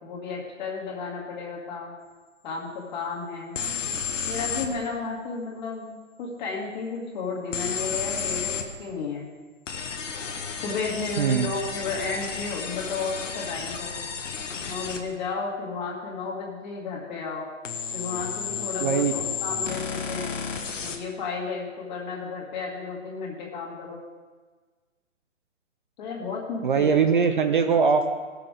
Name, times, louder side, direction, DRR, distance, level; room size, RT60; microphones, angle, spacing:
voice 1, 0.0-1.9 2.4-3.6 4.3-9.3 10.5-14.0 14.7-17.5 17.9-20.4 20.8-24.0 26.0-27.0, left 4 dB, 35° left, -3 dB, 2.3 m, -33 dB
sound 1, 3.6-4.7 7.5-8.7 9.7-15.0 17.6-21.0, left 6 dB, 70° left, 1.3 m, -32 dB
voice 2, 11.2-11.5 18.8-19.1 26.6-28.1, right 6 dB, 40° right, 7 dB, 0.5 m, -21 dB
16.0 x 6.8 x 3.7 m, 1.4 s
hypercardioid pair, 150°, 39 cm